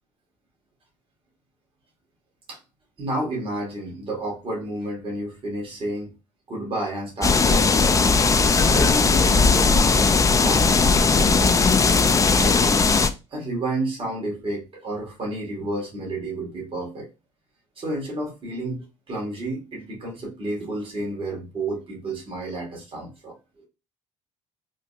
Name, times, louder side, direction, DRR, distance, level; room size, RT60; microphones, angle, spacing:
voice 1, 3.0-6.1 6.5-8.1 8.6-11.6 12.4-12.9 13.3-17.1 17.8-23.7, right 1 dB, 40° right, 2.0 m, -31 dB
sound 1, 7.2-13.1, left 4 dB, 25° left, 0.5 m, -18 dB
4.2 x 2.3 x 2.7 m
supercardioid pair, 75°, 13 cm